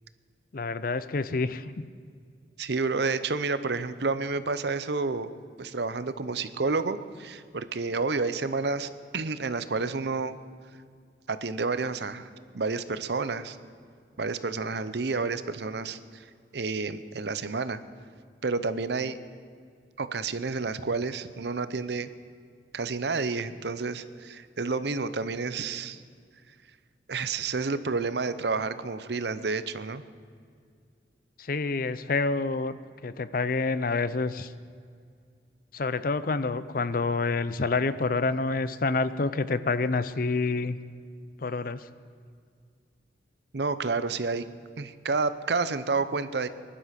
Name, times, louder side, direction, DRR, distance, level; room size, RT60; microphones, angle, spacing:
voice 1, 0.5-1.9 31.4-32.7 33.0-34.5 35.7-40.8 41.4-41.8, left 3 dB, 50° left, 14 dB, 0.6 m, -28 dB
voice 2, 2.6-5.3 5.6-10.4 11.3-12.3 12.5-13.6 14.2-16.2 16.5-17.8 18.4-19.2 20.0-22.1 22.7-26.0 27.1-30.0 43.5-44.4 44.8-46.5, right 4 dB, 65° right, 13 dB, 0.7 m, -30 dB
20.0 x 11.5 x 5.8 m, 2.1 s
head